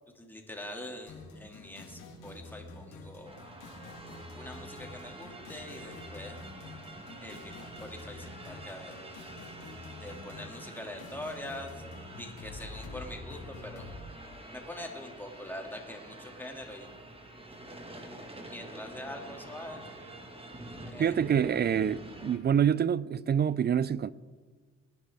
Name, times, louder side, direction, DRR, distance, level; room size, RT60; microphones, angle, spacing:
voice 1, 0.2-3.3 4.3-6.4 7.2-9.0 9.9-11.7 12.2-13.8 14.5-16.9 18.0-18.1 18.4-19.8 20.8-21.1, left 1 dB, 5° left, 2.5 m, -44 dB
sound 1, 1.1-14.0, left 2 dB, 85° left, 3.3 m, -47 dB
sound 2, 3.2-22.4, right 1 dB, 20° right, 1.9 m, -47 dB
voice 2, 21.0-24.1, right 8 dB, 35° right, 0.4 m, -26 dB
23.0 x 10.5 x 3.6 m
cardioid pair, 90°, 30 cm